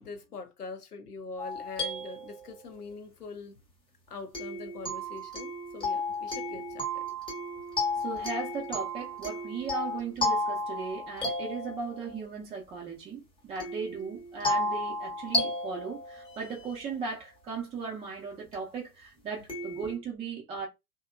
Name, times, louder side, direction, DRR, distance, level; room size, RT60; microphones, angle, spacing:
voice 1, 0.0-3.5 4.1-7.0, left 3 dB, 90° left, 0.6 m, -43 dB
sound 1, 1.4-2.9 4.3-12.2 13.6-16.9 18.5-18.6 19.5-20.0, left 1 dB, 10° left, 0.8 m, -33 dB
voice 2, 8.0-20.7, right 5 dB, 15° right, 0.5 m, -37 dB
2.8 x 2.2 x 2.2 m
figure-of-eight pair, 90°, 45 cm